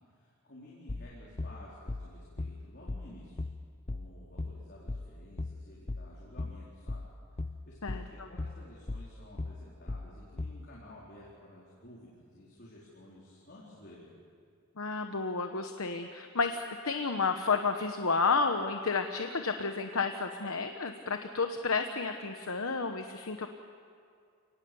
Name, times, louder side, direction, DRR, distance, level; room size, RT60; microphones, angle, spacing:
voice 1, 0.0-3.4 3.9-7.1 7.6-14.1, left 1 dB, 50° left, -6 dB, 4.4 m, -53 dB
sound 1, 0.9-10.7, left 2 dB, 25° left, 0.6 m, -38 dB
voice 2, 14.8-23.5, left 4 dB, 65° left, 6 dB, 1.0 m, -31 dB
30.0 x 19.0 x 7.0 m, 2.3 s
head